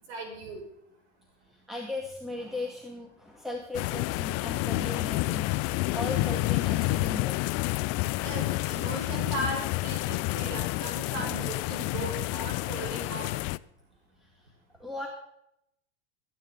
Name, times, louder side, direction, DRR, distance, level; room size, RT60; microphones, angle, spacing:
voice 1, 0.1-0.6 8.2-13.4, right 2 dB, 70° right, 1 dB, 7.0 m, -37 dB
voice 2, 1.7-7.5 11.2-11.5 14.8-15.1, left 2 dB, ahead, 0 dB, 2.2 m, -37 dB
sound 1, 3.7-13.6, left 21 dB, 50° left, 0.5 m, -29 dB
22.0 x 9.8 x 4.0 m, 0.78 s
supercardioid pair, 110°, 33 cm